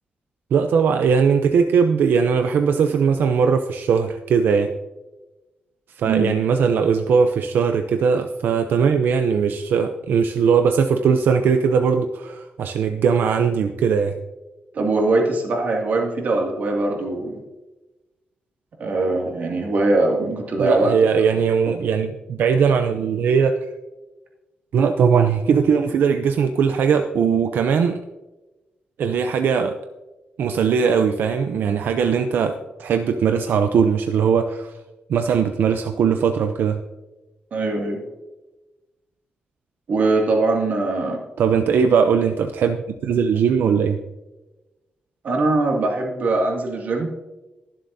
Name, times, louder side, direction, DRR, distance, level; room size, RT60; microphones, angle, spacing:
voice 1, 0.5-4.7 6.0-14.1 20.6-23.7 24.7-28.0 29.0-29.8 30.4-32.5 32.8-34.7 35.1-36.8 41.4-44.0, right 6 dB, 90° right, 6 dB, 0.6 m, -19 dB
voice 2, 14.7-17.4 18.8-20.9 37.5-38.0 39.9-41.2 45.2-47.1, right 2 dB, 55° right, 0 dB, 2.3 m, -21 dB
22.0 x 7.4 x 2.7 m, 1.1 s
wide cardioid pair, 175°, 3 cm